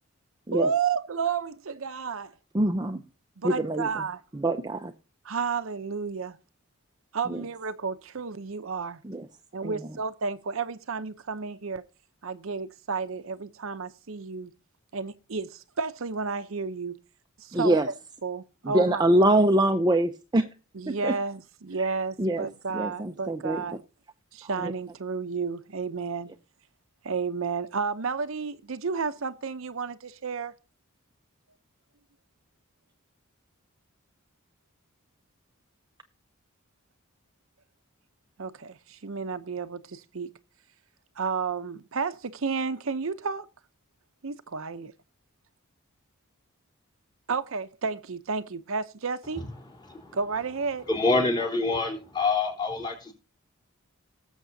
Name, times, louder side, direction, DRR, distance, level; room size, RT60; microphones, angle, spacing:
voice 1, 0.5-2.3 3.4-4.2 5.2-6.4 7.1-9.0 9.5-11.8 12.2-14.5 14.9-16.9 17.4-17.8 18.2-19.0 20.7-23.8 24.3-26.3 27.0-30.5 38.4-40.3 41.2-43.5 44.2-44.9 47.3-49.5 50.1-50.9, right 5 dB, 65° right, 0.7 m, -31 dB
voice 2, 2.5-3.0 3.4-3.9 4.3-4.9 7.3-7.4 9.0-9.3 9.6-9.8 17.5-17.9 18.6-20.5 20.9-21.1 21.8-21.9 22.2-22.5 22.7-23.6 24.4-24.7, right 1 dB, 20° right, 0.6 m, -24 dB
voice 3, 49.9-50.2 50.9-53.1, left 3 dB, 20° left, 3.5 m, -26 dB
19.0 x 7.3 x 2.7 m
head